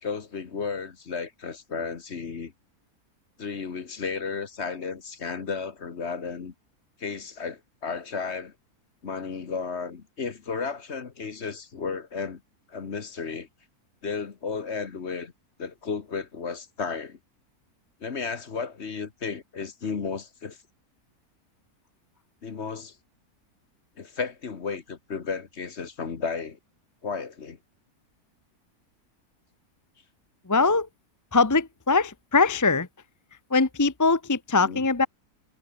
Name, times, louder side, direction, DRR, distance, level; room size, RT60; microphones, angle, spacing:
voice 1, 0.0-2.5 3.4-6.5 7.0-8.5 9.0-12.4 12.7-13.5 14.0-15.3 15.6-17.2 18.0-20.6 22.4-22.9 24.0-26.6 27.0-27.6 34.5-34.9, left 5 dB, 45° left, 1.6 m, -33 dB
voice 2, 30.5-30.9 31.3-32.9 33.5-35.1, left 4 dB, 15° left, 0.8 m, -22 dB
omnidirectional pair, 1.6 m